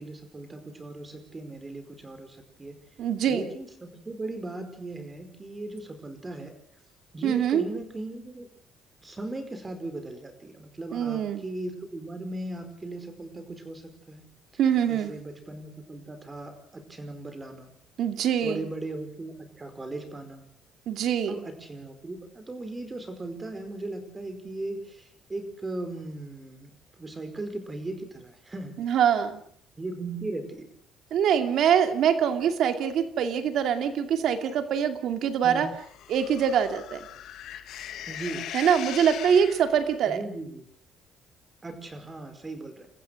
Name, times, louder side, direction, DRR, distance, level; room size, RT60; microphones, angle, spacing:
voice 1, 0.0-2.8 3.3-6.5 7.1-8.5 9.0-14.3 14.9-17.7 18.4-20.4 21.3-26.7 27.0-28.8 29.8-30.7 35.4-35.7 38.1-38.5 40.1-40.7 41.6-42.9, right 2 dB, 20° right, 8 dB, 4.8 m, -38 dB
voice 2, 3.0-3.5 7.2-7.7 10.9-11.4 14.6-15.1 18.0-18.7 20.9-21.4 28.8-29.4 31.1-35.7 36.1-37.0 38.5-40.2, right 8 dB, 65° right, 7 dB, 2.5 m, -24 dB
sound 1, 35.7-40.0, left 11 dB, 70° left, 1.8 m, -40 dB
30.0 x 15.0 x 6.5 m, 0.63 s
cardioid pair, 110°, 0 cm